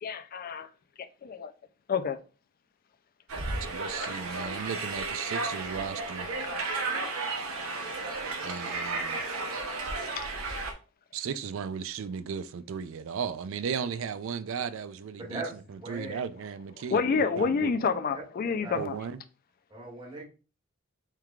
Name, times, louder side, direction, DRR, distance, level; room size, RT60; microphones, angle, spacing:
voice 1, 0.0-0.7 1.0-1.5 1.9-2.2 7.7-7.8 10.1-10.3 16.9-19.0, left 5 dB, 45° left, 0.4 m, -29 dB
sound 1, 3.3-10.7, right 3 dB, 90° right, 0.8 m, -33 dB
voice 2, 3.6-6.3 8.4-9.2 11.1-15.4 15.7-17.0 17.4-17.7 18.7-19.2, right 7 dB, 70° right, 0.4 m, -36 dB
voice 3, 15.2-16.2 18.6-18.7 19.7-20.2, right 2 dB, 25° right, 2.0 m, -39 dB
4.6 x 3.5 x 2.3 m
head